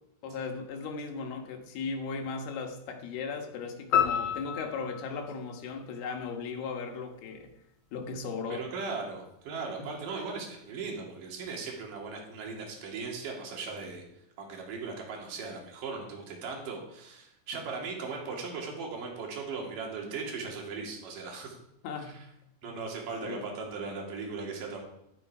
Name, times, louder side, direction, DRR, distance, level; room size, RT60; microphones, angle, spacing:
voice 1, 0.2-7.5 7.9-8.7 9.8-9.9 21.8-22.2 22.6-22.7 23.2-23.4, left 5 dB, 80° left, 3 dB, 3.3 m, -37 dB
sound 1, 3.9-6.4, left 8 dB, 30° left, 2.5 m, -31 dB
voice 2, 8.5-14.0 14.4-21.6 22.0-22.3 22.6-24.8, right 4 dB, 60° right, -1 dB, 3.9 m, -38 dB
12.0 x 11.5 x 4.8 m, 0.81 s
omnidirectional pair, 4.6 m